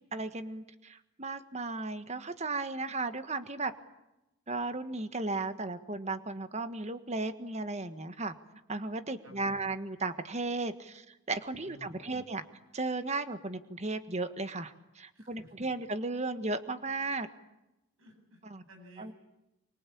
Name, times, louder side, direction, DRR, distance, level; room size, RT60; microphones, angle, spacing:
voice 1, 0.0-3.7 4.5-8.3 8.7-12.4 12.7-17.3 18.5-18.6 19.0-19.1, right 3 dB, 35° right, 10 dB, 1.5 m, -35 dB
voice 2, 9.2-9.7 11.6-12.3 15.1-15.7 18.0-19.1, equal, 80° right, 3 dB, 7.7 m, -55 dB
26.0 x 24.0 x 8.6 m, 0.93 s
head